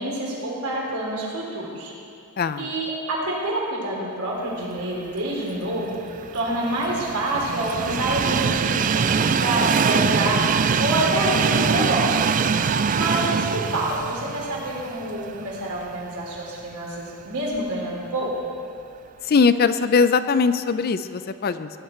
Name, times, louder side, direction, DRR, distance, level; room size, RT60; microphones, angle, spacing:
voice 1, 0.0-1.9 2.6-6.0 6.3-12.3 12.9-18.3, right 1 dB, 85° right, -3 dB, 3.6 m, -27 dB
voice 2, 2.4-2.7 12.7-12.8 19.2-21.7, left 5 dB, 45° left, 12 dB, 0.4 m, -20 dB
Train, 5.8-15.9 16.4-16.5 17.6-17.7, right 6 dB, 35° right, 0.3 m, -23 dB
18.5 x 10.5 x 4.5 m, 2.5 s
head